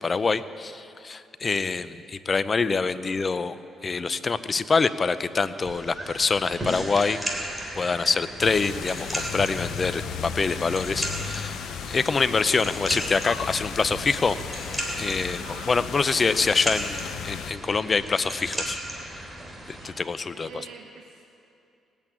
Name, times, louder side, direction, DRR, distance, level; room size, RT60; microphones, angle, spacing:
voice 1, 0.0-3.5 3.8-11.6 11.9-14.4 15.0-15.4 15.7-18.8 19.7-20.5, left 4 dB, 35° left, 14 dB, 0.6 m, -25 dB
voice 2, 2.8-3.4 15.2-15.8 20.3-21.2, right 5 dB, 80° right, -1 dB, 1.5 m, -46 dB
sound 1, 5.7-19.9, right 1 dB, 15° right, 3.2 m, -35 dB
sound 2, 8.4-17.5, left 9 dB, 75° left, 0.5 m, -36 dB
18.0 x 8.5 x 8.9 m, 2.6 s
cardioid pair, 90°, 0 cm